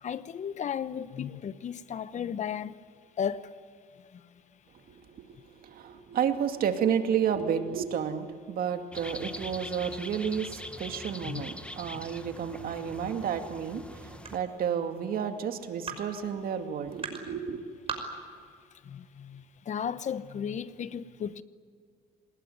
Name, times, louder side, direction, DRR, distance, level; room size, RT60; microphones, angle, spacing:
voice 1, 0.0-2.7 3.2-3.5 11.2-11.4 18.9-21.4, left 8 dB, 45° left, 1.0 m, -34 dB
voice 2, 4.9-17.6, right 8 dB, 60° right, 2.4 m, -31 dB
sound 1, 8.9-14.4, left 1 dB, 5° left, 1.4 m, -42 dB
sound 2, 13.4-19.9, right 4 dB, 35° right, 5.6 m, -44 dB
27.0 x 20.0 x 9.6 m
cardioid pair, 110°, 17 cm